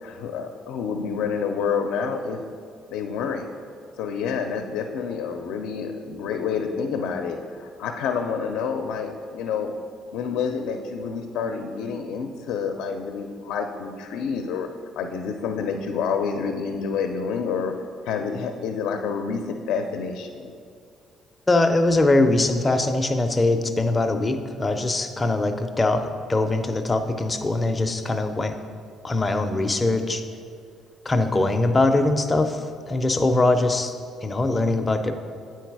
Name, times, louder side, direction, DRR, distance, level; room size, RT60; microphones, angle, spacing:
voice 1, 0.0-2.4 2.9-3.5 4.0-9.7 10.1-14.7 15.0-17.7 18.0-20.5, left 6 dB, 85° left, 5 dB, 0.4 m, -28 dB
voice 2, 21.5-28.6 29.0-30.3 31.1-33.9 34.2-35.1, left 2 dB, 15° left, 6 dB, 0.4 m, -22 dB
8.9 x 4.5 x 4.6 m, 2.2 s
cardioid pair, 170°, 0 cm